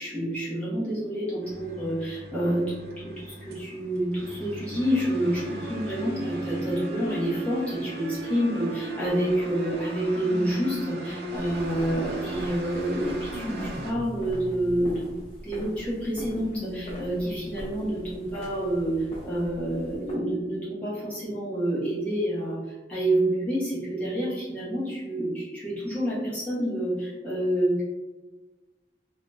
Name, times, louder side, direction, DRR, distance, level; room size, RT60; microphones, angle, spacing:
voice 1, 0.0-15.2 15.4-27.8, right 1 dB, 5° left, -10 dB, 1.1 m, -28 dB
sound 1, 1.4-13.9, right 1 dB, 65° right, 0.5 m, -38 dB
sound 2, 10.2-12.3 12.9-14.9 16.1-17.5 18.2-18.3 19.4-19.5, left 1 dB, 15° right, 0.8 m, -38 dB
sound 3, 11.3-20.1, equal, 30° left, 1.0 m, -42 dB
3.8 x 2.3 x 2.6 m, 1.2 s
head